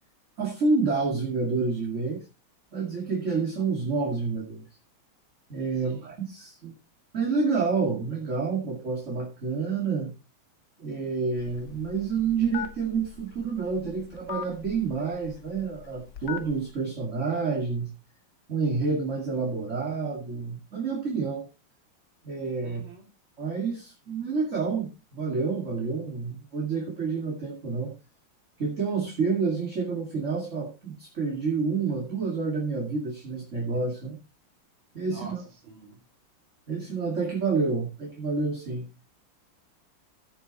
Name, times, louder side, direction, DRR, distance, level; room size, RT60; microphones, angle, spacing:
voice 1, 0.4-2.2 2.7-4.6 5.5-6.7 7.1-10.1 10.8-17.9 18.5-21.5 22.2-22.8 23.4-27.9 28.6-34.2 34.9-35.4 36.7-38.9, right 4 dB, 35° right, 2.5 m, -28 dB
voice 2, 5.7-6.1 22.6-23.0 35.1-36.0, right 3 dB, 80° right, 3.4 m, -47 dB
Telephone, 11.4-16.7, left 9 dB, 60° left, 1.7 m, -41 dB
15.5 x 6.2 x 4.1 m
omnidirectional pair, 2.2 m